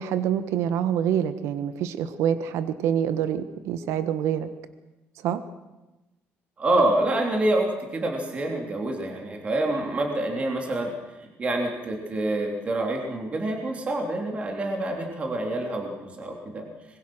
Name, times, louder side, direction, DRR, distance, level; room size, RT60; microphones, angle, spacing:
voice 1, 0.0-4.5 5.2-5.4, right 9 dB, 80° right, 11 dB, 1.4 m, -26 dB
voice 2, 6.6-16.6, right 1 dB, 25° right, 2 dB, 3.4 m, -27 dB
25.5 x 22.0 x 6.3 m, 1.0 s
cardioid pair, 165°, 5 cm